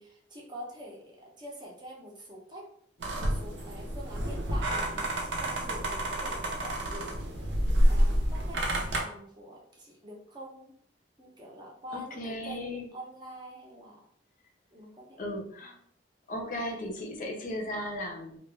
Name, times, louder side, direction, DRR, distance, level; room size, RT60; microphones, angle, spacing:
voice 1, 0.0-2.7 3.2-10.7 11.2-14.0 14.7-15.2, equal, 25° right, -2 dB, 0.6 m, -46 dB
sound 1, 3.0-9.0, equal, 75° right, 0.6 m, -28 dB
voice 2, 11.9-12.9 15.2-15.8 16.3-18.4, left 1 dB, 45° left, 1 dB, 0.5 m, -36 dB
2.3 x 2.1 x 3.1 m, 0.64 s
head